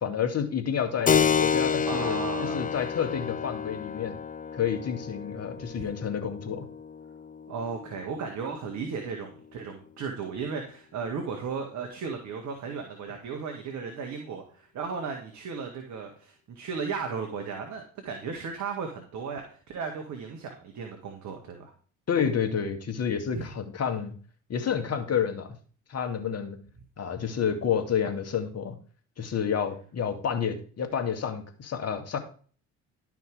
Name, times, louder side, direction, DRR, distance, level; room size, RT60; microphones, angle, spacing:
voice 1, 0.0-4.2 4.5-6.7 22.1-24.1 24.5-25.5 25.9-26.6 27.0-28.8 29.2-32.2, left 7 dB, 45° left, 6 dB, 2.3 m, -29 dB
Keyboard (musical), 1.1-9.3, left 7 dB, 25° left, 0.6 m, -30 dB
voice 2, 1.9-2.7 5.8-5.9 7.5-21.7 23.3-23.5, right 5 dB, 55° right, 3 dB, 2.0 m, -35 dB
12.0 x 5.9 x 4.9 m, 0.42 s
hypercardioid pair, 55°, 35 cm